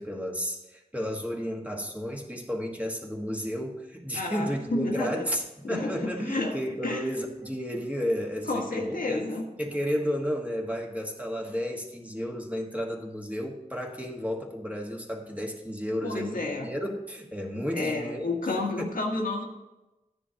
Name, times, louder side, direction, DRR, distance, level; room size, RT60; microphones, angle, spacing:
voice 1, 0.0-9.2 9.6-18.3 18.5-18.6, equal, 10° right, 0 dB, 1.5 m, -32 dB
voice 2, 4.1-5.3 5.6-6.6 6.8-7.1 8.5-9.4 16.0-16.7 17.7-19.5, left 2 dB, 70° left, 1 dB, 1.5 m, -30 dB
14.0 x 10.0 x 2.9 m, 1.0 s
wide cardioid pair, 80°, 15 cm